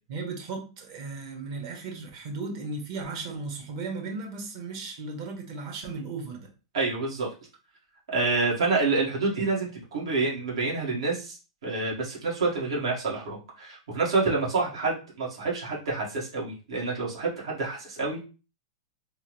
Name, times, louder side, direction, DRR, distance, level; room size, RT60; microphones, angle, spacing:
voice 1, 0.1-6.5, right 3 dB, 55° right, 2 dB, 1.2 m, -36 dB
voice 2, 6.7-7.3 8.1-18.2, right 3 dB, 80° right, -4 dB, 1.6 m, -28 dB
3.4 x 2.2 x 3.1 m, 0.33 s
hypercardioid pair, 125°, 3 cm